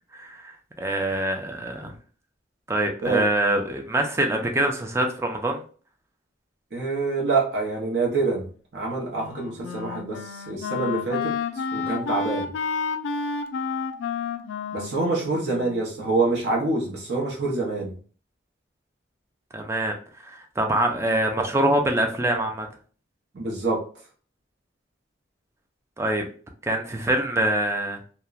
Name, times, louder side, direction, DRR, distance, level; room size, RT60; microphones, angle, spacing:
voice 1, 0.1-1.9 2.7-5.6 11.8-11.9 19.5-19.9 20.2-22.7 26.0-26.3 26.6-28.0, right 1 dB, 15° right, 3 dB, 0.4 m, -24 dB
voice 2, 6.7-8.5 8.7-12.5 14.7-17.9 23.3-23.8, right 3 dB, 60° right, -3 dB, 0.7 m, -26 dB
Wind instrument woodwind instrument, 9.1-16.3, left 5 dB, 85° left, 0.3 m, -31 dB
2.8 x 2.1 x 2.3 m, 0.41 s
head